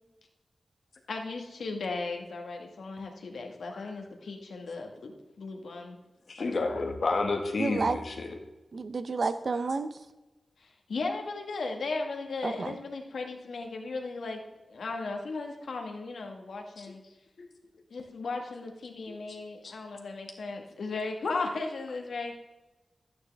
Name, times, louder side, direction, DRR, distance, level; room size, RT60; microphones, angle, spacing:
voice 1, 1.1-6.0 6.4-6.8 10.6-14.4 14.7-17.0 17.9-22.3, left 3 dB, 90° left, 3 dB, 1.5 m, -36 dB
voice 2, 6.3-8.4 16.8-16.9 17.4-17.5 19.1-19.4 19.6-19.7, left 3 dB, 65° left, 3 dB, 1.6 m, -31 dB
voice 3, 7.6-8.0 8.7-9.9 12.4-12.7, right 4 dB, 60° right, 11 dB, 0.6 m, -30 dB
12.0 x 9.4 x 3.4 m, 1.0 s
wide cardioid pair, 100°, 0 cm